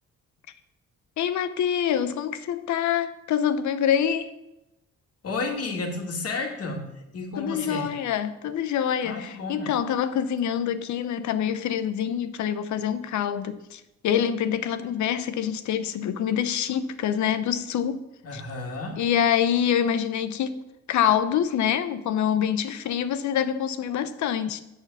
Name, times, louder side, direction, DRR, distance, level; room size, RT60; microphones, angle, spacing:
voice 1, 1.2-4.3 7.4-18.1 18.3-18.4 19.0-20.6 20.9-24.6, left 9 dB, 70° left, 0.8 m, -26 dB
voice 2, 5.2-7.9 9.0-9.8 18.2-19.0, left 3 dB, 50° left, 2.2 m, -32 dB
8.4 x 6.6 x 7.1 m
cardioid pair, 90°, 30 cm